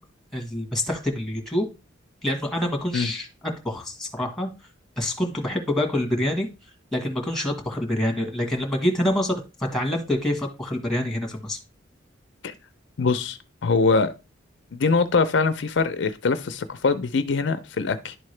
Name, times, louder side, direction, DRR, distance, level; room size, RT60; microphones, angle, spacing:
voice 1, 0.3-1.7 2.2-3.3 3.6-4.5 5.0-6.5 6.9-9.4 9.7-11.6, left 1 dB, ahead, 1.4 m, -26 dB
voice 2, 13.0-14.1 14.7-18.2, left 4 dB, 65° left, 0.5 m, -23 dB
11.0 x 3.7 x 3.2 m
head